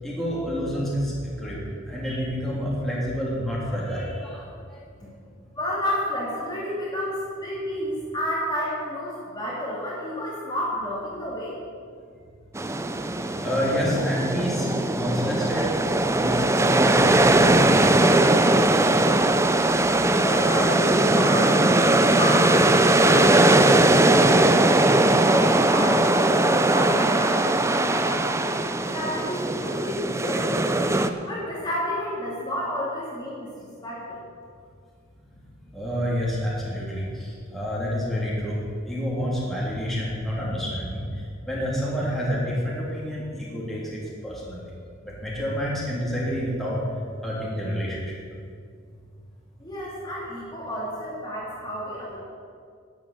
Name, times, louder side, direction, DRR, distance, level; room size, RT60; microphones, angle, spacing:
voice 1, 0.0-1.6 1.9-4.8 13.4-15.7 16.1-18.2 19.8-20.1 35.7-44.7 45.0-46.8 47.2-48.1, equal, ahead, -6 dB, 3.2 m, -29 dB
voice 2, 5.5-11.6 20.2-30.7 31.2-34.2 49.6-52.2, left 1 dB, 20° left, -7 dB, 2.7 m, -31 dB
sound 1, 12.5-31.1, right 2 dB, 15° right, 0.5 m, -20 dB
11.5 x 9.0 x 8.4 m, 2.2 s
head